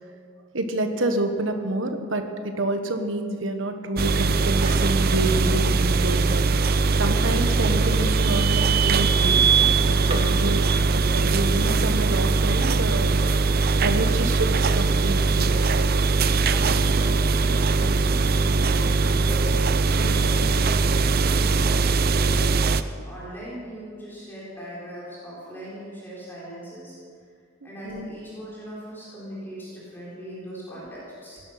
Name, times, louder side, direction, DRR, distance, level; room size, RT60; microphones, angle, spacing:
voice 1, 0.5-6.5 7.0-9.4 9.8-13.4 13.8-15.5 19.9-20.3 27.6-28.1, right 1 dB, 70° right, 6 dB, 1.4 m, -28 dB
sound 1, 4.0-22.8, right 4 dB, 50° right, 0.5 m, -21 dB
sound 2, 4.5-4.9 5.9-11.1, right 1 dB, 30° right, 1.3 m, -39 dB
voice 2, 16.4-19.6 20.1-27.0 27.6-31.4, equal, 10° left, -8 dB, 4.0 m, -39 dB
17.5 x 11.5 x 5.8 m, 2.2 s
head